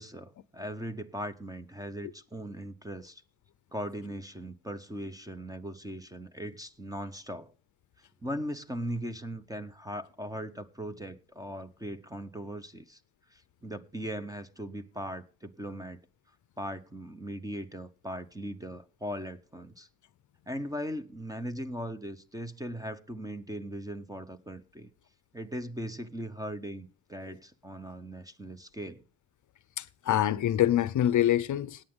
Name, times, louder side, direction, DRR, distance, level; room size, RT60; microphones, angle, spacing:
voice 1, 0.0-3.2 3.7-7.5 8.2-13.0 13.3-16.0 16.6-19.9 20.5-24.9 25.3-29.0, equal, 10° right, 0.6 m, -39 dB
voice 2, 29.8-31.8, left 12 dB, 45° left, 0.6 m, -25 dB
17.5 x 8.8 x 3.6 m
cardioid pair, 125°, 41 cm